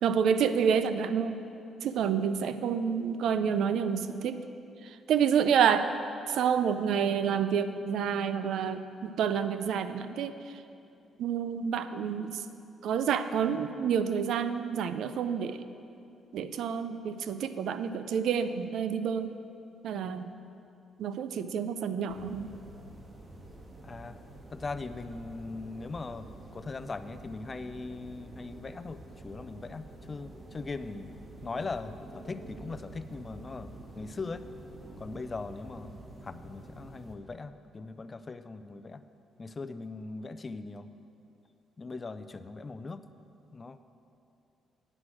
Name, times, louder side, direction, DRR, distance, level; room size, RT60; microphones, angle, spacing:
voice 1, 0.0-1.4 1.8-4.4 4.8-5.9 6.3-10.3 11.2-12.4 12.8-15.6 16.3-19.3 19.8-20.3 21.0-22.5, right 7 dB, 75° right, 11 dB, 0.5 m, -28 dB
sound 1, 22.1-37.2, right 2 dB, 35° right, 1.6 m, -48 dB
voice 2, 23.8-24.2 24.5-31.1 31.4-34.5 35.0-36.0 36.2-39.0 39.4-40.9 41.8-43.0 43.5-43.8, left 3 dB, 30° left, 11 dB, 0.4 m, -40 dB
9.8 x 6.0 x 7.7 m, 2.7 s
cardioid pair, 90°, 0 cm